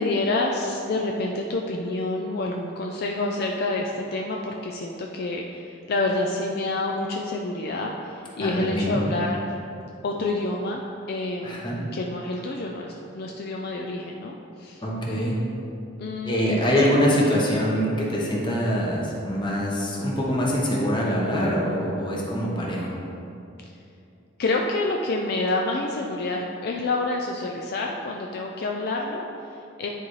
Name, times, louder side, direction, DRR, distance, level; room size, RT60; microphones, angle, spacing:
voice 1, 0.0-9.6 10.0-10.8 11.1-11.6 11.9-14.8 16.0-16.9 24.4-29.9, left 2 dB, 55° left, 0 dB, 0.4 m, -28 dB
voice 2, 8.4-9.0 11.4-11.8 14.8-15.4 16.2-22.9, equal, 25° left, -4 dB, 1.1 m, -24 dB
9.9 x 4.1 x 3.2 m, 2.7 s
head